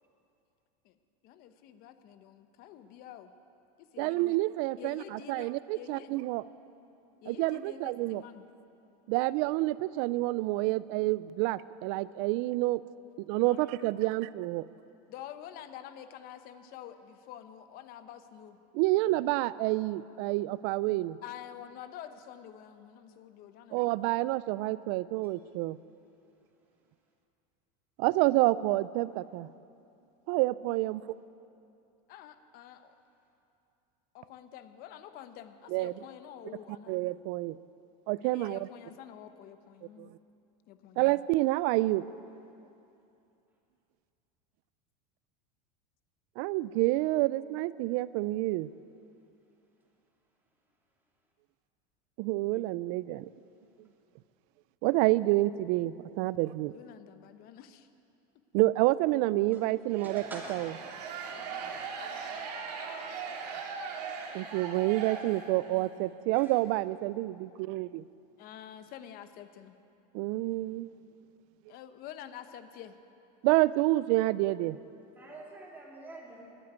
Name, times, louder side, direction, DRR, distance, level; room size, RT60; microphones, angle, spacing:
voice 1, 1.2-3.3 3.8-4.4 4.8-6.1 7.2-8.5 13.5-13.7 14.0-14.1 15.1-18.6 21.2-24.2 32.1-32.9 34.1-37.0 38.3-40.1 40.7-41.0 56.7-57.9 68.4-69.8 71.7-73.0, left 10 dB, 45° left, 10 dB, 0.9 m, -48 dB
voice 2, 4.0-6.4 7.3-8.2 9.1-12.8 13.2-14.7 18.7-21.2 23.7-25.8 28.0-29.5 30.3-31.0 35.7-35.9 36.9-37.6 38.1-38.6 40.0-40.1 41.0-42.1 46.4-48.7 52.2-53.3 54.8-56.7 58.5-60.7 64.3-68.0 70.1-70.9 73.4-74.8, right 18 dB, 55° right, 18 dB, 0.4 m, -28 dB
Audience Yes, 59.9-65.8, right 5 dB, 85° right, 2.0 m, -39 dB
voice 3, 60.0-60.7 61.8-61.9 62.3-62.4 66.4-66.5 75.2-76.4, right 2 dB, 10° right, -3 dB, 2.8 m, -46 dB
12.0 x 9.5 x 9.5 m, 2.7 s
supercardioid pair, 135°, 20 cm